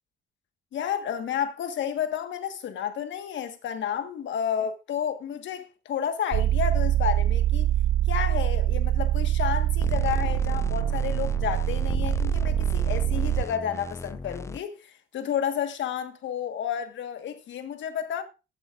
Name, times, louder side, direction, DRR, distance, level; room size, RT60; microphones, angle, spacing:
voice 1, 0.7-7.7 8.1-18.2, left 8 dB, 70° left, 1.4 m, -31 dB
sound 1, 6.3-13.4, right 12 dB, 50° right, 0.4 m, -24 dB
sound 2, 9.8-14.6, left 3 dB, 15° left, 0.4 m, -35 dB
14.5 x 8.1 x 2.5 m
cardioid pair, 90°, 20 cm